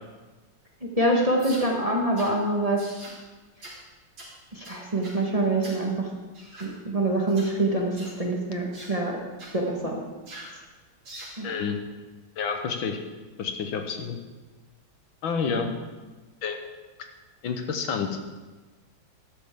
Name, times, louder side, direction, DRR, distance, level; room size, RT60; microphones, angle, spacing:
voice 1, 1.0-2.8 4.5-6.1 6.6-9.2 9.5-10.0 11.4-11.6 15.5-15.7, right 2 dB, 20° right, -1 dB, 1.3 m, -25 dB
sound 1, 1.4-1.7 2.2-2.3 2.8-3.2 3.6-3.8 4.2-4.3 4.6-5.2 5.6-5.8 6.3-6.7 7.3-7.5 8.0-8.2 8.7-8.9 9.4-9.6 10.3-10.5 11.0-11.4, right 1 dB, 75° right, 4.4 m, -43 dB
voice 2, 11.4-11.8 12.4-13.0 13.4-14.2 15.2-15.7 16.4-16.6 17.4-18.1, left 6 dB, 80° left, 5 dB, 1.9 m, -29 dB
13.5 x 12.0 x 3.7 m, 1.2 s
omnidirectional pair, 2.2 m